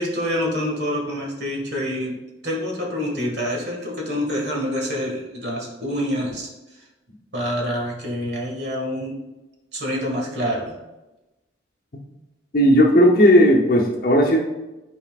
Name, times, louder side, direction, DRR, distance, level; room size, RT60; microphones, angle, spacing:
voice 1, 0.0-2.2 2.4-6.8 7.3-9.2 9.7-10.8, equal, 60° right, -1 dB, 1.8 m, -26 dB
voice 2, 12.5-14.4, equal, 50° left, -1 dB, 0.9 m, -15 dB
10.5 x 4.4 x 2.5 m, 1.0 s
head